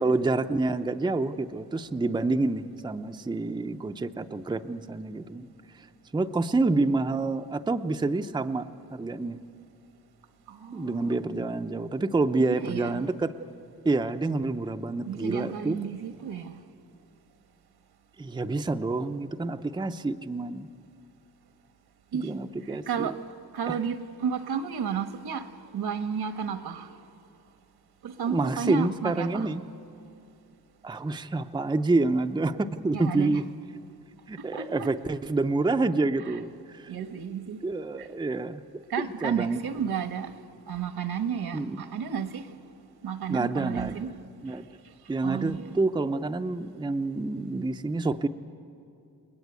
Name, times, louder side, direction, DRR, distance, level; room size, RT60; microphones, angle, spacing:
voice 1, 0.0-5.5 5.8-5.9 6.1-9.4 10.7-13.3 13.8-15.8 18.2-20.7 22.2-23.1 23.7-23.8 28.3-29.6 30.8-33.4 34.3-36.9 37.6-38.8 39.2-39.9 41.5-41.8 43.3-44.1 44.4-44.7 45.1-48.3, right 3 dB, 10° right, 0.6 m, -28 dB
voice 2, 10.5-11.1 12.4-13.0 15.1-16.6 22.1-22.3 22.7-23.2 23.5-27.0 28.0-29.5 32.9-33.4 34.4-34.9 36.2-36.4 36.9-37.6 38.0-38.1 38.9-42.6 43.0-44.1 45.2-45.8, right 7 dB, 75° right, 1.4 m, -32 dB
29.5 x 21.0 x 9.4 m
wide cardioid pair, 155°, 38 cm